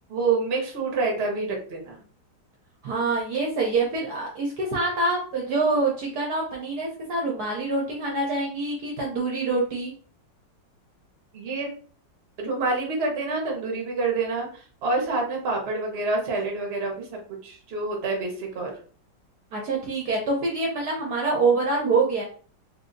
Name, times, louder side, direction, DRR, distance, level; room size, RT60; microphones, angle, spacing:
voice 1, 0.1-2.0 11.3-11.7 12.4-17.1 17.4-18.7, right 3 dB, 45° right, 1 dB, 0.9 m, -27 dB
voice 2, 2.8-9.9 19.5-22.2, right 3 dB, 65° right, -1 dB, 1.1 m, -25 dB
3.3 x 2.7 x 2.5 m, 0.43 s
omnidirectional pair, 2.1 m